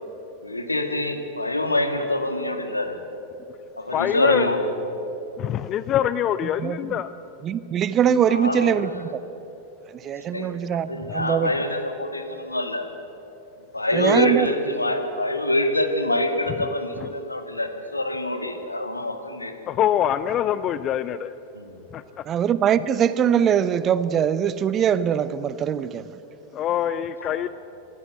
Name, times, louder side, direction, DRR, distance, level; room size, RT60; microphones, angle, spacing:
voice 1, 0.4-3.0 3.8-4.6 8.3-8.8 10.3-12.9 13.7-19.5 21.5-21.7 27.2-27.5, left 1 dB, 85° left, 2.1 m, -25 dB
voice 2, 3.9-4.5 5.4-7.1 17.0-17.1 19.7-21.3 21.9-22.2 26.5-27.5, left 10 dB, 30° left, 0.5 m, -24 dB
voice 3, 6.6-7.0 7.4-9.2 9.9-11.5 13.9-14.5 22.3-26.1, right 9 dB, 30° right, 0.8 m, -22 dB
24.0 x 16.0 x 8.1 m
figure-of-eight pair, 90°, 0 cm